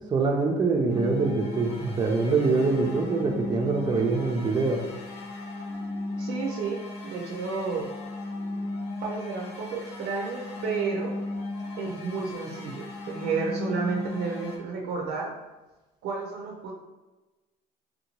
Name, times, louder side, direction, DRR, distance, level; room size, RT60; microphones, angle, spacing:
voice 1, 0.1-4.8, right 3 dB, 25° right, 1 dB, 0.4 m, -24 dB
sound 1, 0.9-14.6, left 2 dB, 80° left, 0.6 m, -36 dB
voice 2, 6.2-7.9 9.0-11.1 11.8-15.3 16.0-16.7, right 5 dB, 80° right, 0 dB, 0.5 m, -31 dB
2.7 x 2.2 x 2.9 m, 1.1 s
cardioid pair, 110°, 17 cm